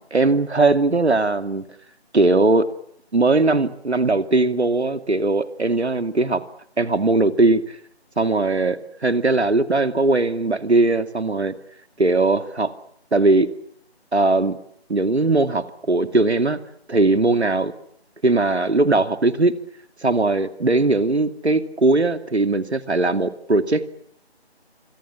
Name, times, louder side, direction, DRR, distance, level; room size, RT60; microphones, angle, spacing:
voice 1, 0.0-1.6 2.1-2.7 3.1-6.4 6.8-7.8 8.2-11.5 12.0-12.7 13.1-13.5 14.1-14.6 14.9-16.6 16.9-17.7 18.2-19.5 20.0-23.8, right 2 dB, 80° right, 10 dB, 2.6 m, -19 dB
25.5 x 25.5 x 7.2 m, 0.69 s
figure-of-eight pair, 165°, 33 cm